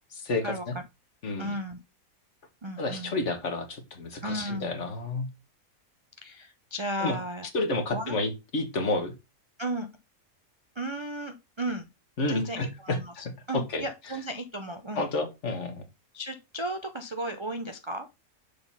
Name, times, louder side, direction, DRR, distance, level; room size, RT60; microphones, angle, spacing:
voice 1, 0.2-0.7 1.2-1.5 2.8-5.3 7.0-7.2 7.5-9.1 12.2-13.0 13.5-13.8 14.9-15.8, left 2 dB, 55° left, 6 dB, 1.6 m, -30 dB
voice 2, 1.4-1.8 2.6-3.1 4.2-4.7 6.2-7.5 7.9-8.2 9.6-9.9 10.8-11.9 12.3-15.1 16.1-18.1, right 1 dB, 40° right, 7 dB, 0.4 m, -34 dB
6.8 x 3.9 x 5.5 m, 0.25 s
omnidirectional pair, 1.5 m